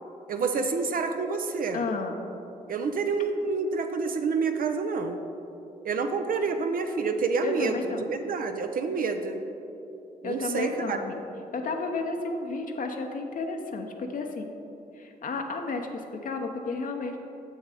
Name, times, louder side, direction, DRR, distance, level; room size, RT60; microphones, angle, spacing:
voice 1, 0.3-1.8 2.7-5.2 5.8-7.8 8.1-9.4 10.2-11.0, right 4 dB, 60° right, 6 dB, 0.6 m, -28 dB
voice 2, 1.7-2.2 7.4-8.1 10.2-11.2 11.5-14.5 14.9-17.2, left 3 dB, 55° left, 3 dB, 0.7 m, -32 dB
6.5 x 6.4 x 4.9 m, 2.9 s
cardioid pair, 60°, 16 cm